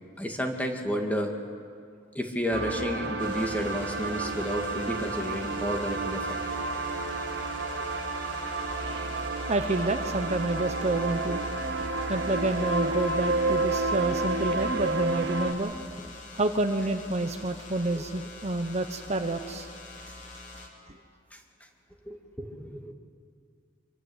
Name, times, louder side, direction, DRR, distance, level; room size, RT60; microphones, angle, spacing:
voice 1, 0.2-1.3 2.1-6.4 11.3-11.4 21.3-21.4 22.1-22.9, equal, 10° left, 3 dB, 2.4 m, -31 dB
sound 1, 2.5-15.5, right 3 dB, 65° right, 2.3 m, -30 dB
sound 2, 3.2-20.7, left 2 dB, 45° left, 3.6 m, -45 dB
voice 2, 9.5-11.4 12.1-15.7 16.3-19.7, right 2 dB, 35° right, 7 dB, 1.0 m, -28 dB
26.0 x 24.5 x 8.2 m, 2.3 s
head